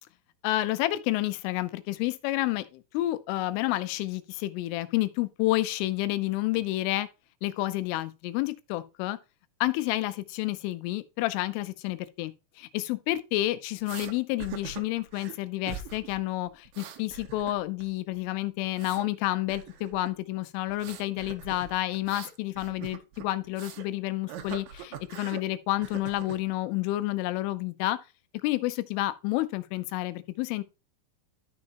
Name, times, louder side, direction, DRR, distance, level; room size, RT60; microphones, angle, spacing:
voice 1, 0.4-7.1 7.4-9.2 9.6-28.0 28.4-30.6, left 16 dB, 85° left, 3.1 m, -30 dB
sound 1, 13.9-14.1 14.4-15.4 15.7-16.2 16.5-17.8 18.1-19.1 19.5-20.1 20.7-23.9 24.3-25.4 25.8-26.4, right 8 dB, 75° right, 2.9 m, -42 dB
11.5 x 6.5 x 2.9 m
omnidirectional pair, 5.8 m